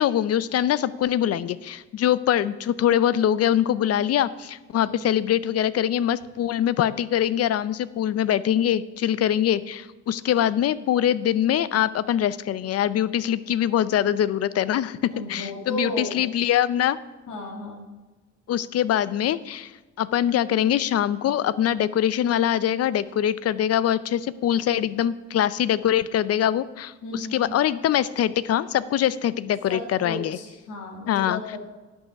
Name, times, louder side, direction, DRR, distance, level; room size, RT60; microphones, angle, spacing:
voice 1, 0.0-17.0 18.5-19.7 20.0-30.4 31.1-31.4, left 10 dB, 55° left, 17 dB, 0.5 m, -23 dB
voice 2, 15.1-16.2 17.3-17.9 27.0-27.5 29.7-31.6, left 1 dB, 80° left, 1 dB, 1.9 m, -34 dB
11.0 x 5.6 x 5.8 m, 1.2 s
cardioid pair, 90°, 30 cm